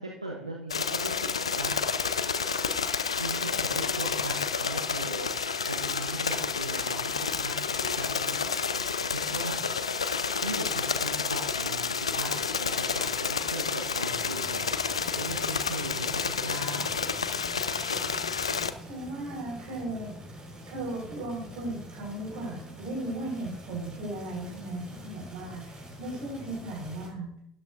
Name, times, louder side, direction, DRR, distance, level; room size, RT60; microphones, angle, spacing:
voice 1, 0.0-1.7 3.2-8.8 9.0-9.6 10.4-14.9 15.1-16.9, right 2 dB, 85° right, 0 dB, 1.0 m, -39 dB
sound 1, 0.7-18.7, left 5 dB, 80° left, 0.5 m, -30 dB
sound 2, 14.1-27.1, equal, 30° right, 4.5 m, -46 dB
voice 2, 18.8-20.1 20.7-27.3, right 1 dB, 60° right, 1 dB, 4.7 m, -36 dB
12.5 x 11.5 x 2.6 m, 0.76 s
figure-of-eight pair, 65°, 3 cm